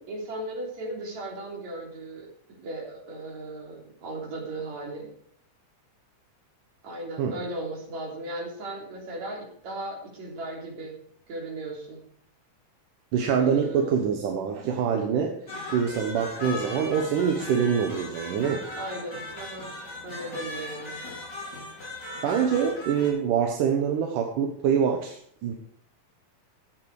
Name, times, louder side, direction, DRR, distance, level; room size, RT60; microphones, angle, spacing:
voice 1, 0.0-2.3 2.6-5.1 6.8-11.0 11.3-12.0 13.4-14.0 16.4-16.6 18.7-19.7 20.0-21.1, right 2 dB, 60° right, -1 dB, 4.5 m, -36 dB
voice 2, 13.1-18.7 22.2-25.5, right 7 dB, 80° right, 3 dB, 2.7 m, -25 dB
sound 1, 15.5-23.1, left 2 dB, 30° left, 4.7 m, -38 dB
14.0 x 8.9 x 4.8 m, 0.63 s
omnidirectional pair, 3.6 m